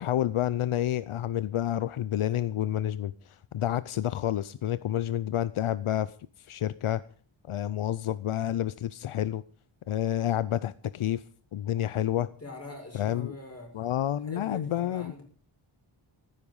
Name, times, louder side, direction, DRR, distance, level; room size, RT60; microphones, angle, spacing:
voice 1, 0.0-6.1 6.4-7.0 7.5-9.4 9.9-11.2 11.5-12.3 12.9-13.4 13.7-15.1, left 11 dB, 80° left, 0.7 m, -29 dB
voice 2, 12.2-13.7 14.2-15.2, left 2 dB, 30° left, 6.7 m, -43 dB
15.0 x 13.0 x 5.5 m
wide cardioid pair, 150°, 49 cm